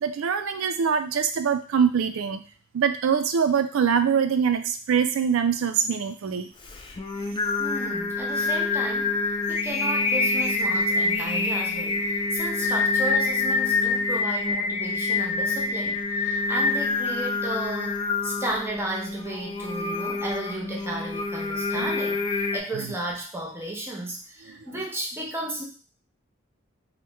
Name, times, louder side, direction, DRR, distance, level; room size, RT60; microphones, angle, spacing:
voice 1, 0.0-2.4 2.7-6.5 21.7-21.9, right 7 dB, 90° right, 9 dB, 0.4 m, -23 dB
Singing, 6.6-22.6, left 3 dB, 25° left, 0.3 m, -26 dB
voice 2, 7.6-18.0 18.2-25.6, right 1 dB, 10° right, -1 dB, 0.7 m, -34 dB
2.9 x 2.1 x 3.4 m, 0.39 s
head